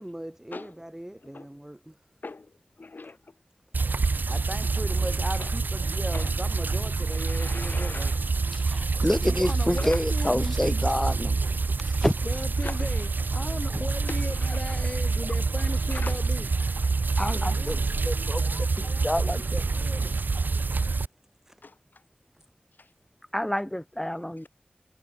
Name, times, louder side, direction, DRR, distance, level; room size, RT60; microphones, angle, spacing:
voice 1, 0.0-1.9 4.3-8.1 17.7-17.8, right 1 dB, 15° right, 0.5 m, -38 dB
voice 2, 1.1-1.5 2.2-3.4 4.8-4.9 5.4-5.5 6.1-6.4 7.1-8.2 8.6-8.8 9.8-10.8 11.4-12.1 12.6-13.1 13.4-15.3 15.8-16.2 17.0-17.2 21.6-22.0 22.8-22.9, left 3 dB, 75° left, 6.3 m, -43 dB
sound 1, 3.7-21.1, right 4 dB, 75° right, 0.6 m, -27 dB
voice 3, 8.5-11.4 11.8-12.1 17.2-18.4 19.0-19.6 23.3-24.5, equal, 10° left, 1.1 m, -28 dB
voice 4, 9.2-10.6 12.2-16.7 17.3-17.8 18.4-19.4 19.7-20.2, left 2 dB, 35° left, 1.1 m, -38 dB
wide cardioid pair, 40°, 3 cm